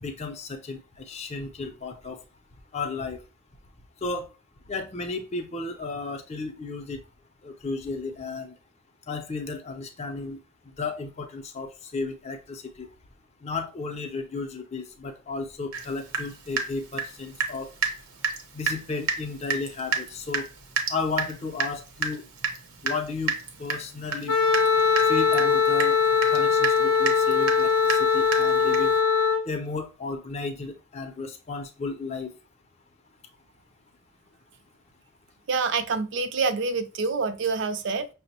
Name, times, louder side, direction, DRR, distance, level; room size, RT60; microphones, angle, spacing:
voice 1, 0.0-2.2 2.7-3.2 4.0-4.3 4.7-7.0 7.4-8.5 9.1-10.4 10.8-12.9 13.4-17.7 18.5-20.5 20.9-22.2 22.8-24.3 25.1-26.0 26.3-28.9 29.5-32.3, left 4 dB, 30° left, 0.5 m, -33 dB
Water tap faucet / Drip, 15.7-15.9 16.1-17.6 17.8-18.0 18.2-18.4 18.7-18.8 19.1-19.2 19.5-29.0, right 5 dB, 85° right, 0.8 m, -30 dB
Wind instrument woodwind instrument, 24.3-29.4, left 6 dB, 85° left, 0.6 m, -21 dB
voice 2, 35.5-38.1, right 4 dB, 55° right, 0.4 m, -26 dB
5.7 x 2.0 x 2.8 m
head